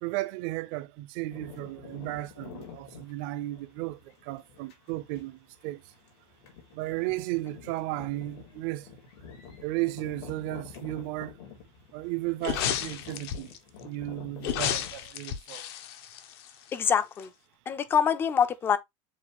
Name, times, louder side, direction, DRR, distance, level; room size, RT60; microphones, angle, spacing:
voice 1, 0.0-5.8 6.7-8.9 9.6-11.3 11.9-13.5 13.8-15.6, right 17 dB, 50° right, 0.5 m, -34 dB
sound 1, 1.3-14.9, left 6 dB, 85° left, 2.3 m, -48 dB
sound 2, 12.4-13.6 14.4-16.9 17.2-17.3, left 10 dB, 70° left, 0.7 m, -32 dB
voice 2, 16.7-17.3 17.7-18.8, left 7 dB, 15° left, 0.3 m, -25 dB
7.3 x 2.5 x 2.9 m
cardioid pair, 175°, 14 cm